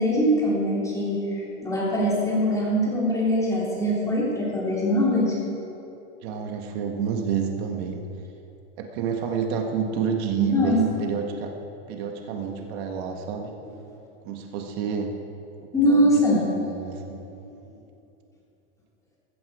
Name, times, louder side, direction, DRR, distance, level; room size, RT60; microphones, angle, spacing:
voice 1, 0.0-5.3 10.4-10.8 15.7-16.7, equal, 10° left, -6 dB, 3.2 m, -22 dB
voice 2, 6.2-8.1 8.8-11.5 11.9-13.5 14.2-15.2 15.8-16.1 16.8-17.3, right 6 dB, 60° right, 3 dB, 1.5 m, -29 dB
15.0 x 14.5 x 4.9 m, 2.8 s
supercardioid pair, 160°, 35 cm